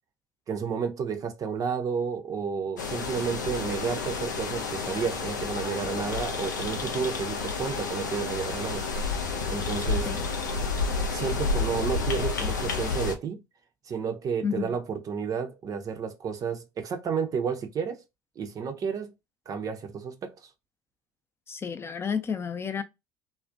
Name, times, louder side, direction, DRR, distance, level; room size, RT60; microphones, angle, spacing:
voice 1, 0.5-8.8 9.5-10.1 11.1-13.4 13.8-18.0 18.4-19.1 19.5-20.3, right 6 dB, 40° right, 0.5 m, -31 dB
sound 1, 2.8-13.2, left 4 dB, 85° left, 0.4 m, -30 dB
sound 2, 4.2-10.2, left 4 dB, 70° left, 0.8 m, -51 dB
voice 2, 14.4-14.7 21.5-22.8, left 6 dB, 25° left, 0.5 m, -31 dB
2.4 x 2.1 x 2.5 m
hypercardioid pair, 60°, 10 cm